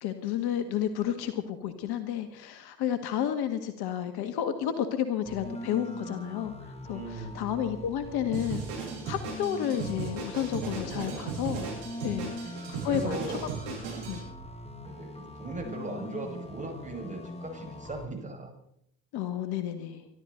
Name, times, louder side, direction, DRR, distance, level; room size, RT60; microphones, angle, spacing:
voice 1, 0.0-8.6 9.1-11.7 12.0-13.2 13.7-13.8 14.1-14.3 19.1-20.1, left 10 dB, 50° left, 9 dB, 1.9 m, -31 dB
sound 1, 5.3-18.1, left 1 dB, 15° left, 2.5 m, -42 dB
voice 2, 6.8-7.5 9.0-9.4 10.6-11.4 12.2-12.5 12.8-13.5 14.8-18.5, right 2 dB, 15° right, 1 dB, 5.6 m, -39 dB
Drum kit, 8.3-14.2, right 6 dB, 60° right, 7.4 m, -37 dB
25.0 x 12.5 x 4.0 m, 0.72 s
figure-of-eight pair, 60°, 48 cm